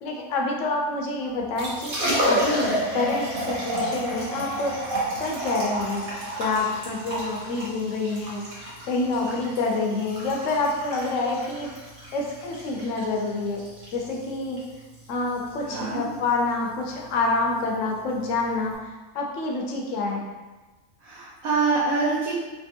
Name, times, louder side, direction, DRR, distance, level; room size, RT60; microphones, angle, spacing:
voice 1, 0.0-2.0 2.3-4.7 5.2-6.1 6.4-11.7 12.1-13.6 13.9-14.6 15.1-18.7 19.1-20.3, left 3 dB, 70° left, 0 dB, 0.9 m, -27 dB
Liquid, 1.4-18.7, equal, 40° right, 1.0 m, -31 dB
voice 2, 15.7-16.0 21.0-22.3, right 4 dB, 80° right, -8 dB, 1.2 m, -25 dB
3.4 x 2.5 x 2.7 m, 1.2 s
omnidirectional pair, 1.5 m